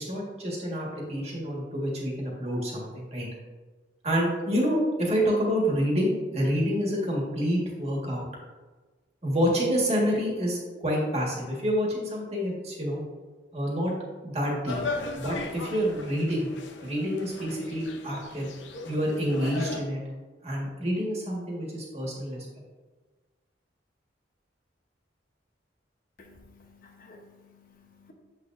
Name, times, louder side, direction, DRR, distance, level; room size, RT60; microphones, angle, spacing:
voice 1, 0.0-3.3 4.0-8.2 9.2-13.0 13.5-13.9 14.2-14.8 15.1-16.5 16.8-18.5 18.9-20.0 20.4-22.6, equal, 35° right, -3 dB, 1.7 m, -28 dB
sound 1, 14.7-19.8, left 3 dB, 85° left, 0.8 m, -37 dB
voice 2, 26.2-28.1, left 3 dB, 50° left, 3 dB, 1.0 m, -54 dB
7.4 x 6.3 x 2.6 m, 1.3 s
head